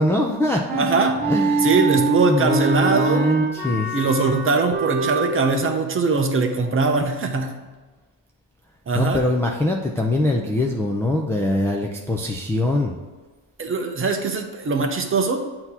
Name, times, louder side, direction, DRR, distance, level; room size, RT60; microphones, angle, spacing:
voice 1, 0.0-0.9 1.2-2.0 2.3-3.9 8.9-12.9, left 1 dB, 5° left, -1 dB, 0.4 m, -22 dB
Wind instrument woodwind instrument, 0.7-5.6, right 4 dB, 45° right, 1.7 m, -24 dB
voice 2, 0.8-1.2 1.6-3.3 3.9-7.7 8.9-9.2 13.6-15.4, right 4 dB, 25° right, 4 dB, 0.7 m, -21 dB
7.9 x 3.0 x 5.4 m, 1.3 s
cardioid pair, 120°, 48 cm